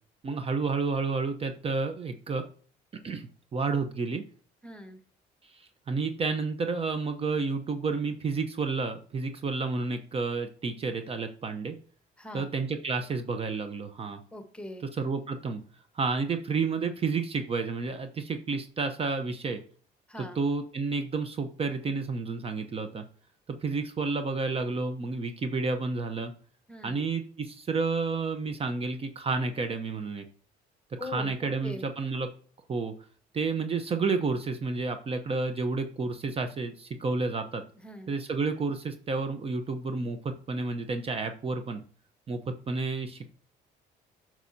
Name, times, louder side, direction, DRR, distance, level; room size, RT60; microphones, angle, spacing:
voice 1, 0.2-2.4 3.0-4.2 5.4-11.8 12.3-14.2 15.0-15.6 15.9-19.6 20.4-23.0 23.6-26.3 26.8-30.3 31.1-32.3 32.7-32.9 33.3-37.6 38.1-41.8 42.3-43.3, right 4 dB, 35° right, 7 dB, 0.8 m, -30 dB
voice 2, 4.6-5.0 12.2-12.5 14.3-14.9 20.1-20.4 26.7-27.0 31.0-31.9 37.8-38.1, left 2 dB, 5° left, 7 dB, 1.2 m, -41 dB
8.1 x 6.2 x 2.7 m, 0.42 s
cardioid pair, 110°, 17 cm